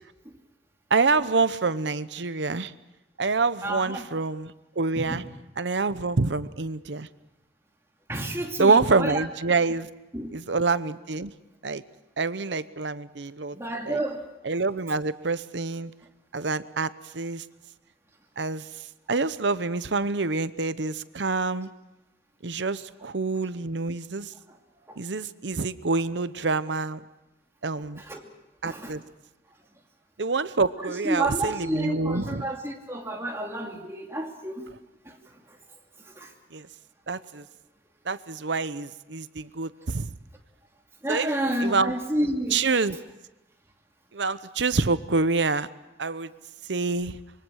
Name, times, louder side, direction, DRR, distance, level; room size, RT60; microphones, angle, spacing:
voice 1, 0.9-2.7 3.2-5.2 5.6-7.1 8.6-9.9 10.3-11.3 11.6-11.8 12.2-13.6 13.9-14.0 14.4-15.9 16.3-17.4 18.4-18.7 19.1-21.7 22.4-24.3 25.0-27.0 27.6-28.0 28.6-29.0 30.2-32.5 36.5-36.7 37.1-37.4 38.1-40.1 41.1-41.3 41.6-42.0 42.5-43.0 44.1-45.7 46.0-46.3 46.7-47.2, right 4 dB, 85° right, 14 dB, 0.9 m, -26 dB
voice 2, 3.6-4.1 4.9-5.2 8.1-9.2 10.1-10.3 13.5-14.3 24.9-25.0 27.8-28.2 28.6-28.9 30.8-34.6 35.0-35.2 36.1-36.3 41.0-42.7, right 1 dB, 15° right, 0 dB, 2.6 m, -30 dB
25.5 x 23.5 x 6.4 m, 1.0 s
head